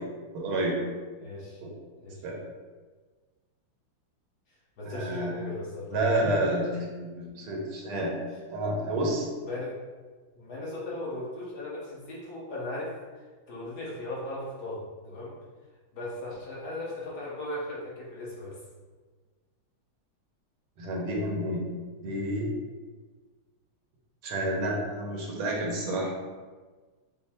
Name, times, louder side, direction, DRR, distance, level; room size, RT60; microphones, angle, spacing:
voice 1, 0.3-0.8 2.2-2.4 4.8-5.3 5.9-8.2 8.5-9.3 20.8-21.6 22.0-22.5 24.2-26.1, right 1 dB, 85° right, -1 dB, 1.8 m, -29 dB
voice 2, 1.2-1.6 2.0-2.2 4.5-6.1 9.4-9.8 10.3-15.3 15.9-18.6, left 1 dB, 55° left, -6 dB, 1.3 m, -37 dB
5.6 x 2.0 x 4.2 m, 1.4 s
omnidirectional pair, 2.3 m